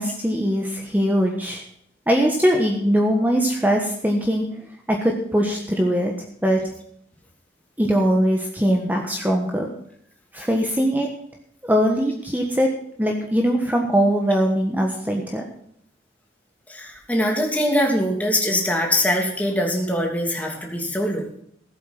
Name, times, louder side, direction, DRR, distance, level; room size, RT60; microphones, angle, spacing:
voice 1, 0.0-1.6 2.1-4.5 4.9-6.1 6.4-6.6 7.8-9.7 10.3-11.1 11.6-12.7 13.0-15.4, equal, 10° right, 1 dB, 1.4 m, -21 dB
voice 2, 16.7-21.2, left 1 dB, 10° left, 0 dB, 2.7 m, -22 dB
15.0 x 8.5 x 5.9 m, 0.69 s
head